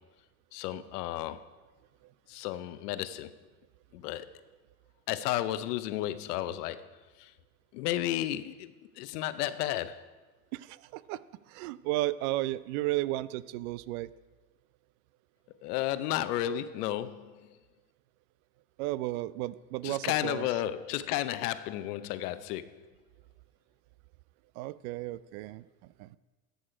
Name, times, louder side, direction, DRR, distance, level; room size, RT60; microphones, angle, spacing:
voice 1, 0.5-1.4 2.3-3.3 3.9-4.3 5.1-6.9 7.2-7.3 7.7-10.1 15.6-17.3 19.8-22.7, left 13 dB, 70° left, 13 dB, 0.8 m, -33 dB
voice 2, 10.5-11.2 11.5-14.1 18.8-20.5 24.6-26.2, right 17 dB, 60° right, 18 dB, 0.5 m, -34 dB
13.5 x 6.4 x 5.0 m, 1.2 s
hypercardioid pair, 95°, 48 cm